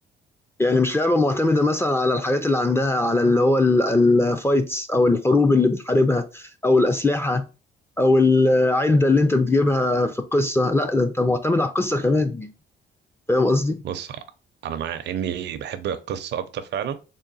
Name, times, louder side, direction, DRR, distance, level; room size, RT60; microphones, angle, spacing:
voice 1, 0.6-7.5 8.0-12.5 13.3-13.8, left 2 dB, 10° left, 0.4 m, -20 dB
voice 2, 13.8-14.2 14.6-16.9, right 9 dB, 60° right, 0.5 m, -29 dB
3.7 x 2.2 x 3.9 m
cardioid pair, 90°, 20 cm